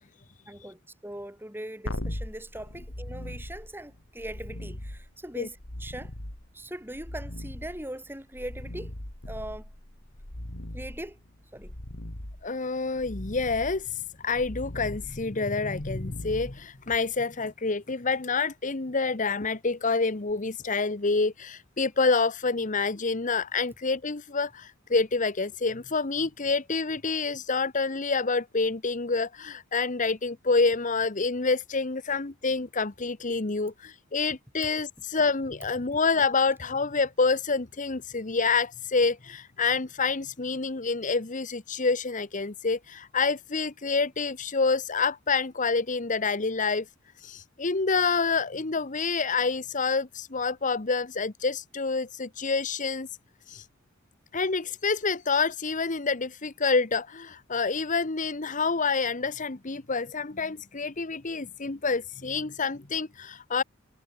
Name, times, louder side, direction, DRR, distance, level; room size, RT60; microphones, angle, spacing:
voice 1, 0.5-6.1 6.5-8.9 9.3-9.7 10.7-11.2 11.5-11.8, right 1 dB, 10° right, 7.0 m, -40 dB
sound 1, 1.9-17.2 20.3-20.4, left 1 dB, 70° left, 3.5 m, -40 dB
voice 2, 12.4-46.8 47.2-53.1 53.5-53.6 54.3-63.6, left 4 dB, 40° left, 1.1 m, -27 dB
head